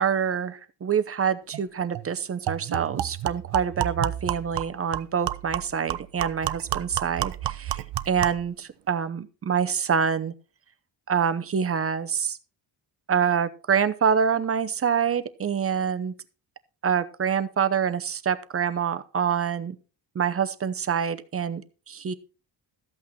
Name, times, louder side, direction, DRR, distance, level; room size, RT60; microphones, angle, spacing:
voice 1, 0.0-10.3 11.1-12.4 13.1-16.1 16.8-19.8 20.1-22.1, right 7 dB, 35° right, 11 dB, 0.8 m, -26 dB
sound 1, 1.5-1.6 1.9-2.1 2.5-8.5, right 13 dB, 75° right, 0.7 m, -31 dB
14.0 x 8.4 x 4.2 m, 0.34 s
wide cardioid pair, 160°, 42 cm